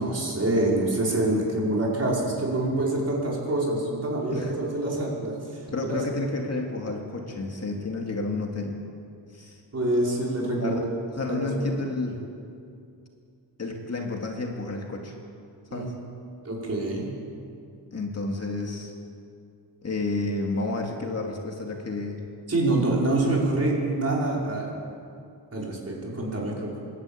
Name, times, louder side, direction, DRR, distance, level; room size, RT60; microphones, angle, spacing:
voice 1, 0.0-5.6 5.9-6.0 9.7-10.7 11.2-11.8 15.7-15.9 16.4-17.1 22.5-24.8 25.5-26.8, right 2 dB, 35° right, -3 dB, 5.0 m, -26 dB
voice 2, 5.7-8.8 9.3-9.6 10.6-12.2 13.6-15.1 15.7-15.9 17.9-18.9 19.8-22.2, left 2 dB, 35° left, 1 dB, 2.4 m, -30 dB
28.5 x 12.5 x 8.7 m, 2.5 s
wide cardioid pair, 155°, 42 cm